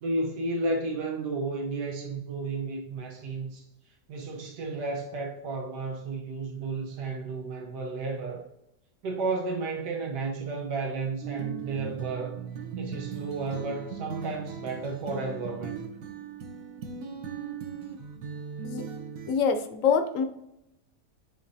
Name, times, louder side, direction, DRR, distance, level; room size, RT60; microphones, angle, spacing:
voice 1, 0.0-3.6 4.1-8.4 9.0-12.4 12.8-15.9, right 3 dB, 85° right, 1.5 m, -32 dB
sound 1, 11.2-19.3, right 6 dB, 65° right, 1.0 m, -38 dB
voice 2, 19.3-20.2, left 6 dB, 65° left, 0.9 m, -25 dB
10.5 x 3.6 x 2.7 m
omnidirectional pair, 1.7 m